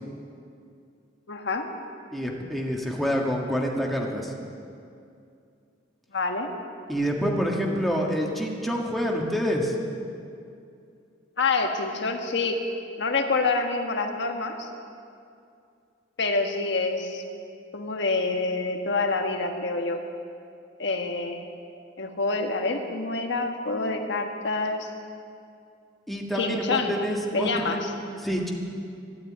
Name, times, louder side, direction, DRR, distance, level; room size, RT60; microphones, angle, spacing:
voice 1, 1.3-1.7 6.1-6.5 11.4-12.6 13.0-14.7 16.2-17.2 17.7-20.0 20.8-21.4 22.0-24.9 26.4-26.9 27.3-27.9, left 3 dB, 65° left, 4 dB, 1.4 m, -27 dB
voice 2, 2.1-4.3 6.9-9.7 26.1-27.8 28.2-28.5, equal, ahead, -1 dB, 1.7 m, -27 dB
12.5 x 12.0 x 8.8 m, 2.5 s
head